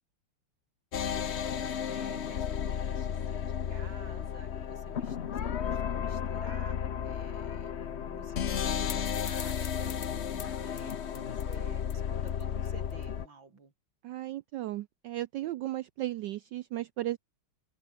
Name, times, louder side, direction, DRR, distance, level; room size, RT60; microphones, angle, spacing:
sound 1, 0.9-13.3, left 8 dB, 60° left, 0.7 m, -33 dB
voice 1, 1.5-10.1 10.3-13.7, right 4 dB, 60° right, 4.7 m, -52 dB
voice 2, 14.0-17.2, right 15 dB, 75° right, 1.0 m, -35 dB
open air
omnidirectional pair, 2.4 m